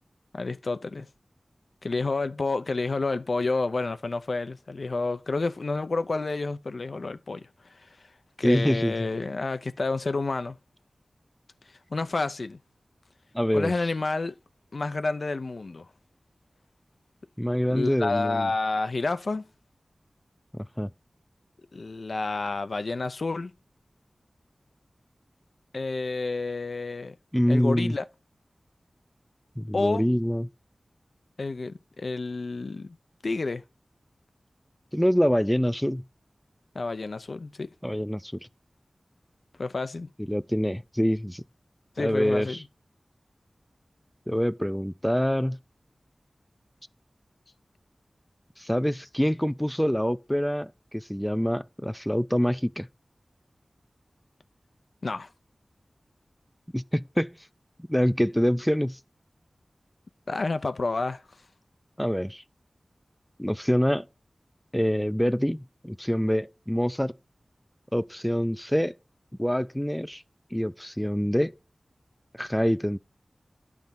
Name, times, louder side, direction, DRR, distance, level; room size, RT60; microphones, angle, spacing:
voice 1, 0.3-1.1 1.8-7.5 8.4-10.6 11.9-12.6 13.5-14.3 14.7-15.8 17.7-19.4 21.7-23.5 25.7-27.1 27.5-28.1 29.7-30.1 31.4-33.0 33.2-33.6 36.7-37.7 39.6-40.1 42.0-42.6 55.0-55.3 60.3-61.2, left 3 dB, 70° left, 0.5 m, -29 dB
voice 2, 8.4-8.9 13.3-13.7 17.4-18.5 20.8-20.9 27.3-28.0 29.6-30.5 34.9-36.0 37.8-38.3 40.2-41.4 42.0-42.6 44.3-45.6 48.6-52.9 56.7-57.3 57.9-59.0 62.0-62.4 63.4-64.1 64.7-67.1 67.9-69.0 69.4-70.2 70.5-71.5 72.4-73.0, equal, 5° left, 0.4 m, -25 dB
10.5 x 3.5 x 5.7 m
wide cardioid pair, 55°, 0 cm